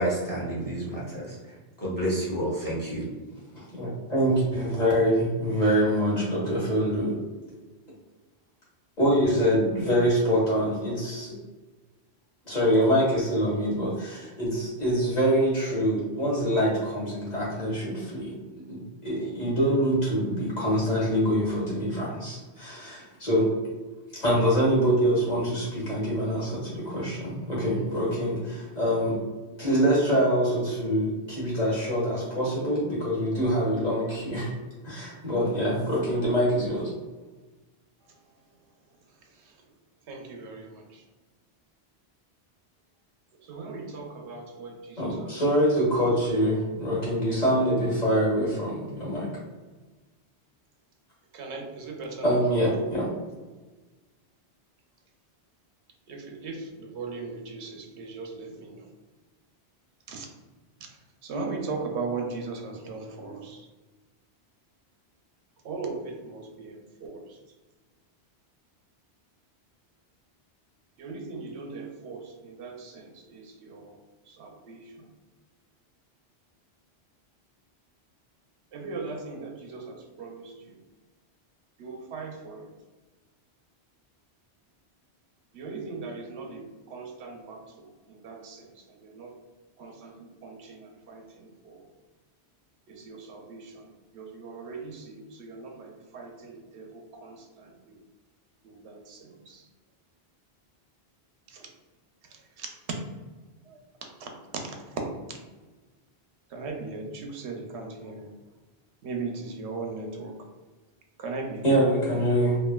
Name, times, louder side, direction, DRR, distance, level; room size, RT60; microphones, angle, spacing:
voice 1, 0.0-3.1, right 1 dB, 20° left, -7 dB, 0.9 m, -30 dB
voice 2, 3.5-7.2 9.0-11.3 12.4-23.5 24.1-29.2 29.6-34.5 34.8-36.9 45.0-49.3 52.2-53.1 111.6-112.6, equal, 40° left, -6 dB, 1.5 m, -25 dB
voice 3, 40.1-41.0 43.4-45.3 51.3-52.4 56.1-58.9 60.1-60.3 61.2-63.7 65.6-67.4 71.0-74.0 74.3-75.1 78.7-80.8 81.8-82.7 85.5-89.3 89.8-91.9 92.9-93.9 94.1-98.0 98.6-99.7 101.5-101.7 102.3-102.7 103.7-103.8 104.2-104.3 104.8-105.0 105.3-105.4 106.5-108.3 109.0-110.4 111.2-111.8, right 4 dB, 85° right, 2 dB, 0.8 m, -39 dB
3.1 x 2.4 x 2.2 m, 1.3 s
omnidirectional pair, 1.1 m